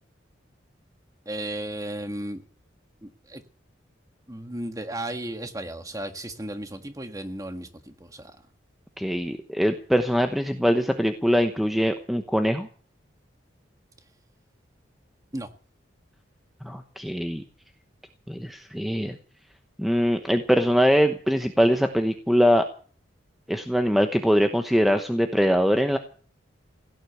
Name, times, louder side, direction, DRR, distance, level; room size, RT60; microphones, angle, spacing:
voice 1, 1.2-2.4 3.0-3.4 4.3-8.4 15.3-15.5, right 1 dB, 15° right, 1.6 m, -34 dB
voice 2, 9.0-12.7 16.6-17.4 18.3-19.2 19.8-22.6 23.5-26.0, equal, ahead, 1.0 m, -22 dB
17.0 x 10.0 x 7.9 m
head